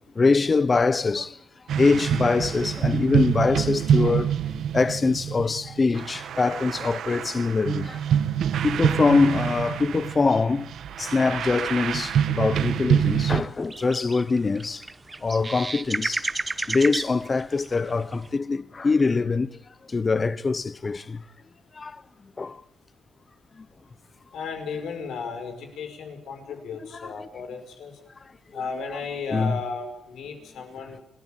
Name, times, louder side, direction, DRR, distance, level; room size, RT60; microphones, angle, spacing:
voice 1, 0.2-1.4 1.8-4.3 4.7-8.0 8.6-10.7 11.0-14.8 15.2-16.3 16.7-19.5 19.9-21.2 21.8-22.0 22.4-22.6 27.0-27.1 29.3-29.6, left 4 dB, 30° left, 0.8 m, -23 dB
sound 1, 1.7-13.4, right 9 dB, 75° right, 1.6 m, -26 dB
sound 2, 13.0-18.4, right 3 dB, 20° right, 1.0 m, -32 dB
voice 2, 24.3-27.9 28.5-31.0, left 5 dB, 80° left, 5.3 m, -34 dB
30.0 x 14.5 x 9.1 m
cardioid pair, 125°, 0 cm